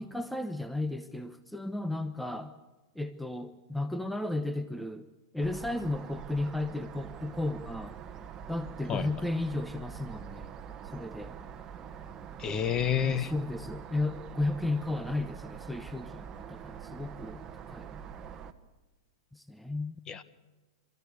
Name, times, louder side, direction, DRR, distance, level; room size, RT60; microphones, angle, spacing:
voice 1, 0.0-2.5 2.9-5.1 5.3-8.0 8.5-10.5 10.8-11.4 13.0-18.0 19.3-20.0, left 2 dB, ahead, 11 dB, 0.9 m, -34 dB
sound 1, 5.4-18.5, right 8 dB, 25° right, 1.4 m, -45 dB
voice 2, 12.4-13.3 20.1-20.2, left 8 dB, 30° left, 14 dB, 1.3 m, -29 dB
29.0 x 13.5 x 8.4 m, 1.2 s
hypercardioid pair, 120°, 2 cm